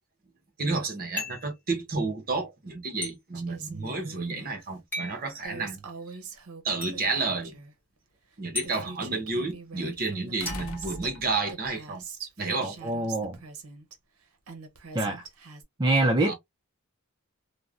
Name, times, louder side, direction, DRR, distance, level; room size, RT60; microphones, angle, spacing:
voice 1, 0.6-5.8 6.6-7.6 8.4-12.0 12.4-12.8 16.3-16.4, right 3 dB, 45° right, 0.9 m, -31 dB
sound 1, 1.2-1.5 3.0-3.2 4.9-5.2 6.8-6.9 8.6-8.7 10.5-11.5, left 3 dB, 10° left, 1.1 m, -36 dB
Female speech woman speaking, 3.3-4.6 5.4-7.7 8.3-8.4 8.6-11.1 11.5-13.9 14.5-15.6, right 5 dB, 80° right, 0.7 m, -43 dB
sound 2, 10.4-11.7 13.0-13.1, left 2 dB, 75° left, 0.6 m, -40 dB
voice 2, 12.6-13.4 14.9-15.3 15.8-16.3, right 2 dB, 20° right, 0.4 m, -25 dB
3.3 x 2.1 x 2.3 m
head